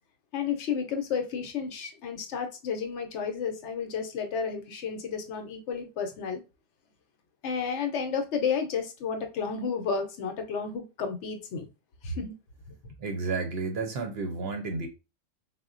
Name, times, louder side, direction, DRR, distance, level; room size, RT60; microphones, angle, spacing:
voice 1, 0.3-6.4 7.4-11.7 12.0-12.3, left 6 dB, 70° left, 0.9 m, -32 dB
voice 2, 13.0-14.9, right 4 dB, 60° right, 0.7 m, -31 dB
3.7 x 2.1 x 2.4 m
omnidirectional pair, 1.3 m